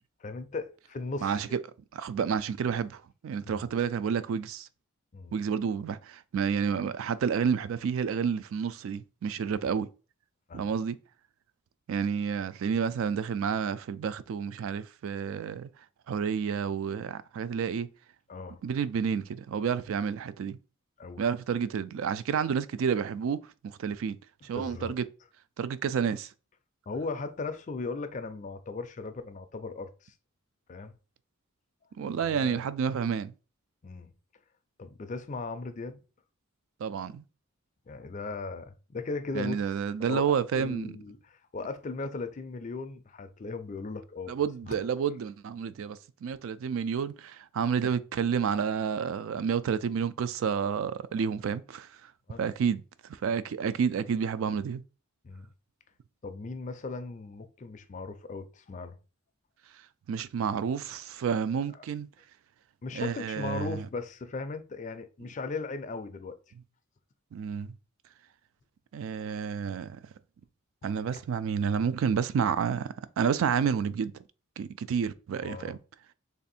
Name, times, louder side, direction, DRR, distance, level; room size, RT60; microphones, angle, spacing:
voice 1, 0.2-1.4 3.5-3.7 5.1-5.3 10.5-10.7 18.3-18.6 21.0-21.2 24.5-24.9 26.9-30.1 30.7-30.9 32.2-32.7 33.8-34.1 34.8-36.0 37.9-39.7 40.0-40.2 40.6-44.3 44.7-44.8 52.3-52.5 55.2-55.5 56.2-59.0 61.7-61.8 62.8-66.4 70.8-71.2 75.4-75.8, left 3 dB, 35° left, 0.4 m, -38 dB
voice 2, 1.9-4.7 5.3-9.9 10.5-11.0 11.9-15.7 16.1-17.9 18.6-20.6 21.2-24.2 24.4-25.0 25.6-26.3 32.0-33.3 36.8-37.2 39.3-40.9 44.3-52.1 52.4-52.8 53.1-54.8 60.1-62.1 62.9-63.8 67.3-67.7 68.9-70.0 70.8-74.1 74.6-75.8, right 7 dB, 65° right, 0.3 m, -30 dB
3.3 x 2.6 x 4.1 m
head